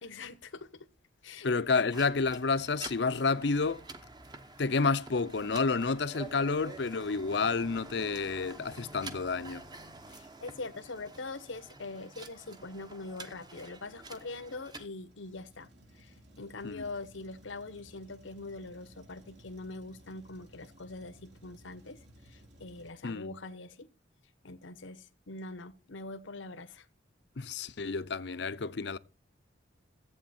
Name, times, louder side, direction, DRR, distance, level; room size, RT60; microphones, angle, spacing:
voice 1, 0.0-0.9 1.2-1.5 1.8-1.9 10.1-15.7 15.9-22.0 22.2-23.9 24.4-26.9, left 3 dB, 85° left, 1.0 m, -43 dB
voice 2, 1.4-3.8 4.6-9.7 16.6-16.8 23.0-23.3 27.4-29.0, left 4 dB, 60° left, 0.6 m, -30 dB
sound 1, 1.9-14.9, right 2 dB, 20° right, 0.9 m, -48 dB
Truck, 14.7-22.9, equal, 65° right, 3.0 m, -58 dB
14.5 x 8.4 x 4.3 m
head